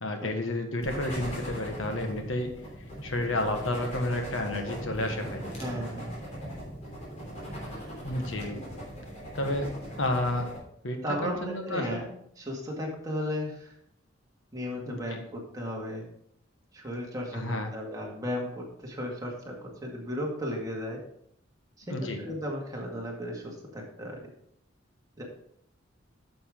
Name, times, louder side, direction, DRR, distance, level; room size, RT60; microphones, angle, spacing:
voice 1, 0.0-2.5 3.0-5.4 8.0-8.6 9.3-9.7 10.0-10.5 10.8-12.1 14.9-15.2 17.3-17.7 21.9-22.2, left 1 dB, 80° left, 5 dB, 1.4 m, -31 dB
sound 1, 0.8-10.6, equal, 35° left, 3.3 m, -39 dB
voice 2, 5.6-6.1 11.0-12.0 12.4-13.7 14.5-16.1 16.7-21.0 21.8-24.2 25.2-25.3, equal, 20° right, -1 dB, 2.0 m, -35 dB
8.9 x 6.9 x 3.7 m, 0.71 s
head